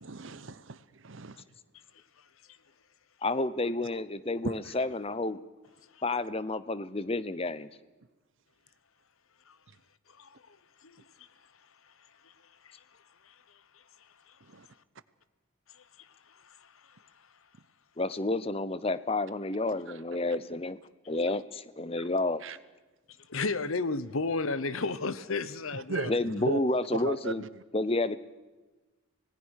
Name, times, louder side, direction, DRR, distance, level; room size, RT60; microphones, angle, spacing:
voice 1, 0.0-0.8 1.0-1.4 4.4-4.6 14.5-14.7 22.4-22.6 25.7-26.1 26.4-26.6 27.0-27.5, right 3 dB, 65° right, 16 dB, 0.8 m, -35 dB
voice 2, 3.2-5.4 6.0-7.7 18.0-20.8 21.1-22.4 26.1-27.4 27.7-28.2, left 2 dB, 25° left, 16 dB, 0.7 m, -30 dB
voice 3, 10.2-10.6 10.8-11.3 12.2-12.3 12.6-12.8 13.2-13.3 14.3-14.4 15.7-17.0 23.3-26.1, left 3 dB, 80° left, 16 dB, 1.0 m, -34 dB
26.0 x 18.5 x 6.5 m, 1.2 s
head